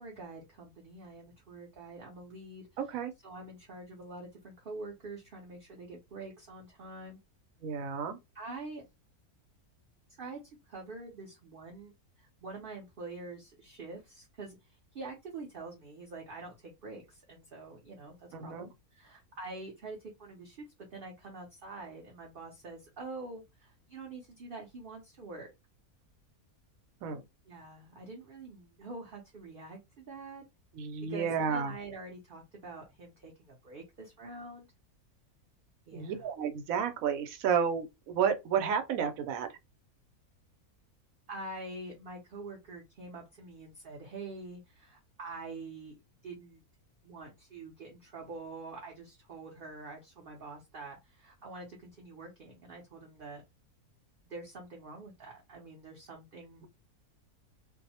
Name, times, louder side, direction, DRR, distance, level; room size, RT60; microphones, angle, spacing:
voice 1, 0.0-2.7 3.2-7.2 8.3-8.9 10.2-11.9 12.2-20.6 20.9-25.5 27.5-30.4 31.1-34.7 35.9-36.2 41.3-46.0 46.2-46.6 47.0-53.4 54.3-56.7, right 3 dB, 55° right, 0.6 m, -46 dB
voice 2, 2.8-3.1 7.6-8.2 18.3-18.7 27.0-27.2 30.7-31.8 35.9-39.5, right 7 dB, 70° right, 0.9 m, -31 dB
2.6 x 2.0 x 2.7 m
omnidirectional pair, 1.6 m